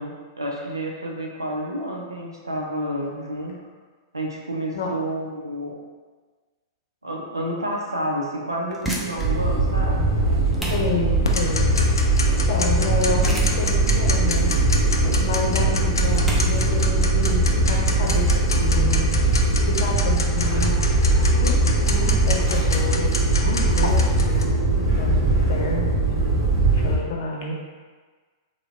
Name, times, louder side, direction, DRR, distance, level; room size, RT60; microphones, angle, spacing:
voice 1, 0.0-3.5 4.1-5.8 7.0-10.1, equal, 90° right, -1 dB, 0.6 m, -30 dB
sound 1, 8.6-19.3, equal, ahead, 0.6 m, -36 dB
sound 2, 9.2-26.9, right 2 dB, 40° right, 1.2 m, -20 dB
voice 2, 10.7-11.7 12.3-14.6 15.2-19.1 19.6-20.8 21.4-24.5 25.0-25.1 25.5-26.3 26.7-27.5, left 4 dB, 55° left, -2 dB, 0.7 m, -29 dB
Tick-tock, 11.2-24.4, left 4 dB, 80° left, 0.4 m, -30 dB
3.2 x 2.2 x 3.4 m, 1.4 s
figure-of-eight pair, 105°, 2 cm